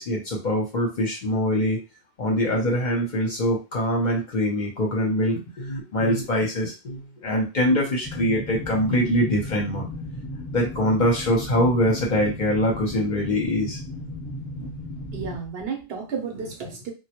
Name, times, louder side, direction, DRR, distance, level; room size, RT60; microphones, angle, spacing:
voice 1, 0.0-1.8 2.2-9.9 10.5-13.8, equal, 50° left, 0 dB, 0.7 m, -23 dB
sound 1, 8.0-15.4, left 1 dB, 20° left, 0.8 m, -35 dB
voice 2, 15.1-16.9, right 5 dB, 65° right, 1 dB, 0.9 m, -32 dB
2.1 x 2.1 x 2.8 m, 0.29 s
omnidirectional pair, 1.1 m